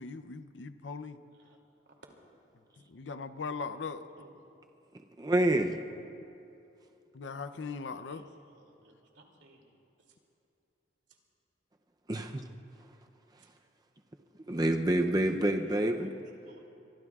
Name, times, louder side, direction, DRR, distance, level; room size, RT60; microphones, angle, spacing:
voice 1, 0.0-1.2 2.9-4.0 6.0-6.2 7.1-8.3, left 4 dB, 85° left, 11 dB, 0.6 m, -40 dB
voice 2, 5.2-5.8 12.1-12.4 14.5-16.1, right 1 dB, 20° right, 5 dB, 0.5 m, -27 dB
voice 3, 7.9-9.6 15.9-16.7, right 2 dB, 85° right, 0 dB, 2.7 m, -59 dB
24.5 x 23.5 x 2.4 m, 2.7 s
head